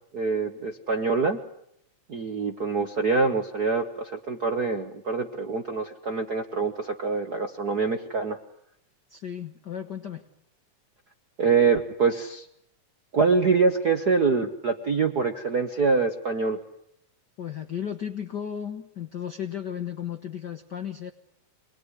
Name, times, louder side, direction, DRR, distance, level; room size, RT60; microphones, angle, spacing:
voice 1, 0.1-1.4 2.1-8.4 11.4-12.4 13.1-16.6, right 4 dB, 60° right, 6 dB, 1.0 m, -25 dB
voice 2, 9.1-10.2 17.4-21.1, left 9 dB, 65° left, 7 dB, 1.0 m, -34 dB
25.0 x 20.5 x 9.8 m, 0.74 s
omnidirectional pair, 3.6 m